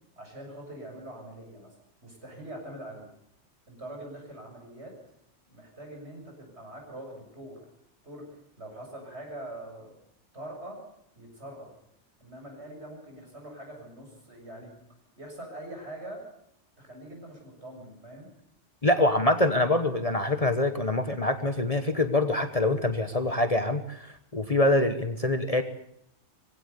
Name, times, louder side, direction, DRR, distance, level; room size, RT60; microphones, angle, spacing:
voice 1, 0.2-3.1 3.7-5.0 5.5-7.6 8.0-9.9 10.3-10.8 11.2-11.7 12.2-14.8 15.2-16.3 16.8-18.3, right 1 dB, 60° right, 1 dB, 7.3 m, -43 dB
voice 2, 18.8-25.6, left 2 dB, 30° left, 9 dB, 1.2 m, -25 dB
21.0 x 16.5 x 8.2 m, 0.73 s
omnidirectional pair, 1.3 m